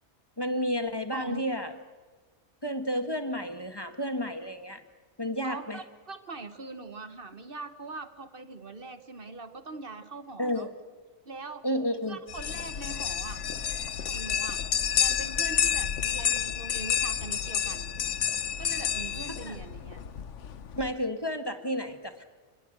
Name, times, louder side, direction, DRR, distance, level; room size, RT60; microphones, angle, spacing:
voice 1, 0.4-1.8 2.6-4.8 5.2-5.8 10.4-10.7 11.6-12.2 19.3-19.6 20.8-22.2, equal, 20° left, 8 dB, 1.6 m, -31 dB
voice 2, 1.1-1.5 5.4-10.7 11.2-11.6 12.1-13.4 14.1-14.6 15.0-17.9 18.6-20.0, right 3 dB, 50° right, 10 dB, 1.3 m, -42 dB
sound 1, 12.3-20.9, left 8 dB, 90° left, 1.3 m, -30 dB
27.0 x 20.5 x 7.9 m, 1.3 s
omnidirectional pair, 1.2 m